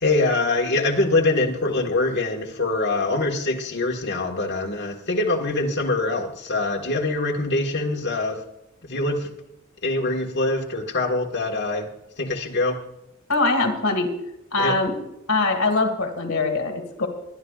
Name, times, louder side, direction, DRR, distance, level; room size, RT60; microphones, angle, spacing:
voice 1, 0.0-8.4 8.8-9.3 9.8-11.9 12.2-12.8 14.6-14.7, left 2 dB, 55° left, -1 dB, 1.6 m, -24 dB
voice 2, 13.3-14.1 14.5-14.9 15.3-17.1, left 3 dB, 90° left, 5 dB, 2.0 m, -22 dB
22.0 x 11.5 x 2.4 m, 0.84 s
head